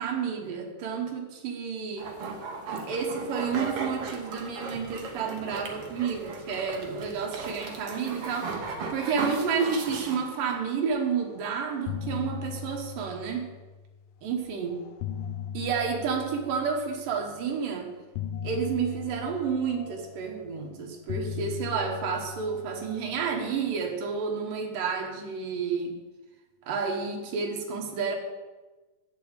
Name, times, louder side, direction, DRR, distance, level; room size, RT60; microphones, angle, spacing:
voice 1, 0.0-2.1 2.7-13.5 14.2-14.7 15.5-17.9 18.4-26.0 26.7-28.2, right 6 dB, 85° right, 1 dB, 3.1 m, -30 dB
sound 1, 2.0-10.6, right 4 dB, 55° right, 1.7 m, -36 dB
sound 2, 11.2-11.4 11.7-14.0 14.7-17.1 18.1-20.6 21.1-23.7, left 8 dB, 90° left, 2.4 m, -38 dB
8.3 x 7.0 x 8.1 m, 1.2 s
omnidirectional pair, 3.8 m